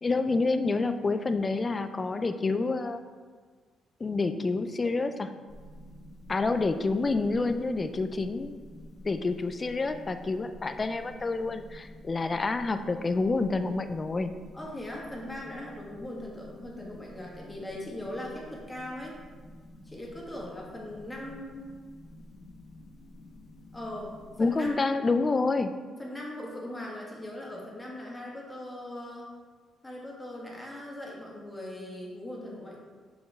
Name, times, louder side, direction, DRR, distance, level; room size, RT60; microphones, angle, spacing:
voice 1, 0.0-3.0 4.0-5.3 6.3-8.6 9.0-14.3 24.4-25.7, left 3 dB, 30° left, 9 dB, 0.5 m, -28 dB
sound 1, 5.5-24.7, left 1 dB, 50° left, 1.4 m, -49 dB
voice 2, 14.5-19.2 19.8-21.6 23.7-24.9 26.0-29.4 29.8-32.8, left 1 dB, 15° left, -3 dB, 1.9 m, -40 dB
7.0 x 5.1 x 3.6 m, 1.6 s
cardioid pair, 90°, 0 cm